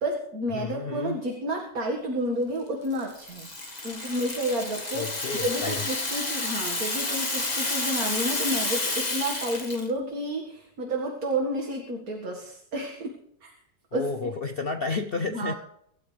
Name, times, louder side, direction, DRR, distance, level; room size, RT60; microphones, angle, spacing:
voice 1, 0.0-3.5 3.8-5.1 5.4-13.1 13.4-13.5 13.9-14.1 15.3-15.5, right 1 dB, 50° right, 0 dB, 2.3 m, -30 dB
voice 2, 0.5-1.2 4.9-5.9 13.9-15.5, left 4 dB, 80° left, 6 dB, 0.5 m, -31 dB
Rattle (instrument), 2.9-9.9, left 2 dB, 20° left, 1.7 m, -30 dB
25.0 x 12.5 x 3.4 m, 0.75 s
omnidirectional pair, 2.1 m